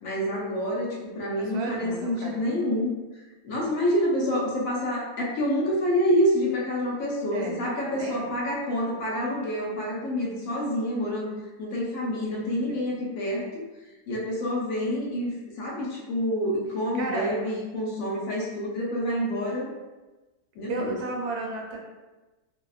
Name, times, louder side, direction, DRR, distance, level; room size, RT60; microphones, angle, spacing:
voice 1, 0.0-2.9 3.4-11.3 11.6-13.5 14.1-19.7 20.6-21.0, equal, 70° left, -4 dB, 0.9 m, -27 dB
voice 2, 1.4-2.4 7.3-7.6 7.9-8.3 12.3-12.8 16.9-17.3 20.7-21.8, right 3 dB, 85° right, 0 dB, 1.1 m, -33 dB
2.6 x 2.1 x 2.3 m, 1.1 s
omnidirectional pair, 1.6 m